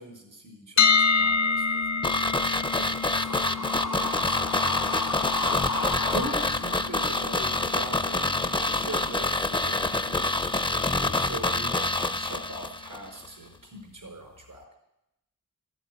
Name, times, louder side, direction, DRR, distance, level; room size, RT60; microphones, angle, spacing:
voice 1, 0.0-4.4 6.0-14.6, right 2 dB, 85° right, 1 dB, 4.6 m, -42 dB
sound 1, 0.8-12.7, left 5 dB, 60° left, 0.6 m, -30 dB
sound 2, 2.0-13.0 13.2-13.3, left 2 dB, 15° left, 0.5 m, -27 dB
sound 3, 3.1-9.5, left 2 dB, 80° left, 2.1 m, -33 dB
14.5 x 8.1 x 9.5 m, 0.85 s
wide cardioid pair, 80°, 31 cm